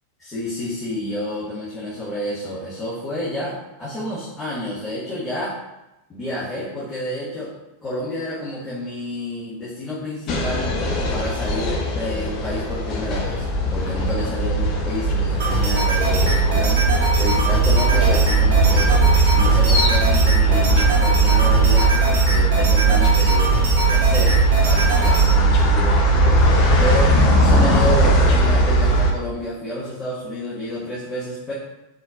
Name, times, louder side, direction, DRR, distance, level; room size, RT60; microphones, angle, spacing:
voice 1, 0.2-5.6 6.1-7.5 7.8-10.7 11.1-16.8 17.2-19.0 19.3-23.6 23.9-26.0 26.8-31.5, left 1 dB, 15° left, -10 dB, 1.3 m, -29 dB
sound 1, 10.3-29.1, right 2 dB, 35° left, 0.7 m, -18 dB
sound 2, 15.4-25.2, right 2 dB, 50° right, 1.1 m, -25 dB
4.4 x 4.0 x 2.4 m, 0.96 s
figure-of-eight pair, 90°, 0 cm